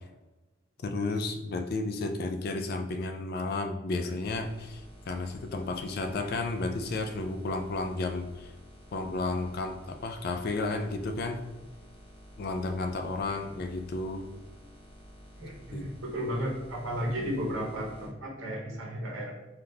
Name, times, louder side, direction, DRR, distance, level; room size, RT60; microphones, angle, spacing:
voice 1, 0.8-8.5 8.9-11.4 12.4-14.2 15.7-15.9, left 3 dB, 50° left, 6 dB, 0.3 m, -32 dB
sound 1, 4.2-18.1, equal, 25° left, 0.7 m, -51 dB
voice 2, 15.4-19.3, equal, 70° right, -1 dB, 0.8 m, -34 dB
3.4 x 2.4 x 2.7 m, 1.1 s
head